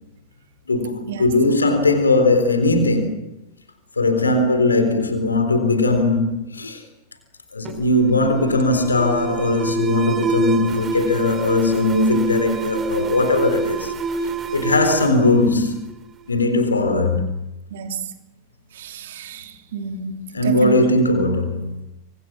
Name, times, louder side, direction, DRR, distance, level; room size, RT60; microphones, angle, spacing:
voice 1, 0.7-3.2 4.0-6.8 7.5-13.9 14.5-15.9 16.3-17.2 20.3-21.8, left 2 dB, 75° left, 3.9 m, -19 dB
Alarm, 7.6-16.2, right 4 dB, 25° right, 3.7 m, -26 dB
voice 2, 17.7-18.0 18.8-20.8, right 5 dB, 60° right, 3.1 m, -29 dB
28.0 x 25.5 x 6.3 m
figure-of-eight pair, 90°, 0 cm